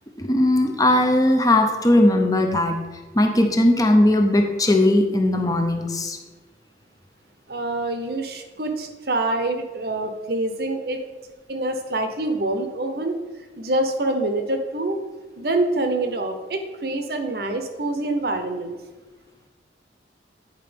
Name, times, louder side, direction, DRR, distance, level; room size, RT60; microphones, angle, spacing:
voice 1, 0.2-2.8 3.1-6.2, left 1 dB, 20° left, 4 dB, 0.7 m, -18 dB
voice 2, 7.5-11.0 11.5-13.2 13.6-15.0 15.4-18.8, right 2 dB, 60° right, 6 dB, 0.8 m, -26 dB
9.1 x 4.3 x 5.2 m, 1.3 s
head